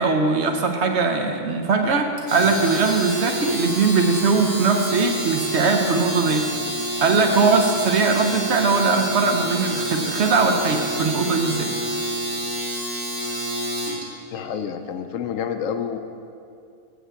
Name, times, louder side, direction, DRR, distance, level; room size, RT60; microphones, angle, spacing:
voice 1, 0.0-6.5 7.0-11.7, right 4 dB, 60° right, 4 dB, 0.9 m, -20 dB
Domestic sounds home sounds, 2.2-14.0, equal, 85° right, 2.5 m, -28 dB
voice 2, 14.3-16.0, left 7 dB, 70° left, 8 dB, 0.9 m, -28 dB
8.0 x 6.0 x 8.0 m, 2.5 s
omnidirectional pair, 1.5 m